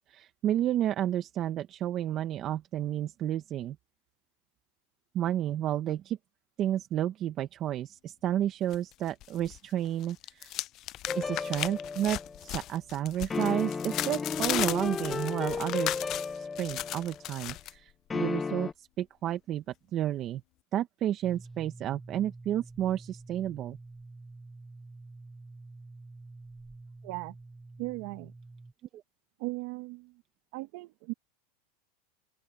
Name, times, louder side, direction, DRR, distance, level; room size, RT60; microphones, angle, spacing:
voice 1, 0.1-3.8 5.1-6.2 6.6-10.5 11.1-16.0 16.4-19.6 19.9-20.4 20.7-23.8, right 11 dB, 35° right, 1.3 m, -31 dB
sound 1, 8.7-9.6 9.9-17.7, left 15 dB, 40° left, 0.4 m, -36 dB
sound 2, 11.1-12.4 13.3-17.2 18.1-18.7, left 5 dB, 15° left, 0.7 m, -34 dB
sound 3, 21.2-28.7, right 3 dB, 10° right, 1.1 m, -48 dB
voice 2, 27.0-27.4 27.8-28.3 29.4-30.2 30.5-31.1, right 24 dB, 60° right, 1.7 m, -37 dB
open air
supercardioid pair, 130°, 0 cm